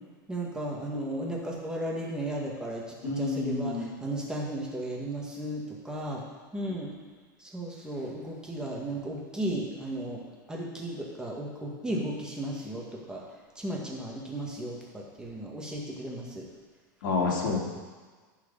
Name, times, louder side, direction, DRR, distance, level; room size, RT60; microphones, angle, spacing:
voice 1, 0.3-6.2 6.5-6.9 7.4-10.2 10.5-13.2 13.5-16.4, right 1 dB, 5° right, -2 dB, 1.8 m, -35 dB
voice 2, 3.0-3.9 6.7-6.8 13.9-14.0 17.0-17.6, left 4 dB, 75° left, -2 dB, 2.4 m, -29 dB
11.0 x 4.8 x 6.8 m, 1.4 s
supercardioid pair, 145°, 11 cm